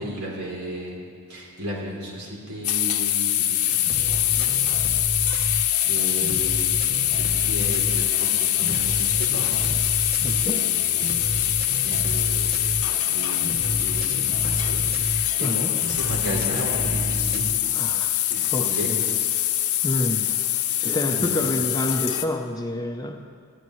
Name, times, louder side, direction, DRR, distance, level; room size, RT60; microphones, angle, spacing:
voice 1, 0.0-4.9 5.3-9.7 9.9-11.5 11.8-17.6 18.3-18.9 21.1-21.5, equal, 85° right, -3 dB, 3.3 m, -35 dB
sound 1, 2.6-22.2, left 12 dB, 85° left, 0.8 m, -24 dB
sound 2, 3.9-17.5, right 1 dB, 45° right, 0.9 m, -31 dB
voice 2, 10.2-10.7 15.4-15.7 17.8-18.2 18.5-19.0 19.8-20.3 20.8-23.3, left 1 dB, 15° left, 4 dB, 0.7 m, -28 dB
19.5 x 13.5 x 3.2 m, 2.3 s
head